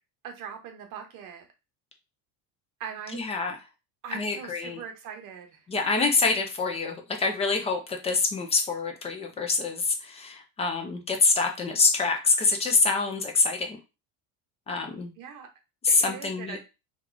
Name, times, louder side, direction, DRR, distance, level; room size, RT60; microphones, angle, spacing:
voice 1, 0.2-1.5 2.8-3.2 4.0-5.6 15.2-15.5 15.9-16.6, right 7 dB, 45° right, 4 dB, 0.9 m, -41 dB
voice 2, 3.1-3.6 4.1-4.8 5.7-13.8 14.7-15.1 15.8-16.6, left 4 dB, 15° left, 3 dB, 0.4 m, -26 dB
2.9 x 2.4 x 3.8 m, 0.28 s
cardioid pair, 160°, 42 cm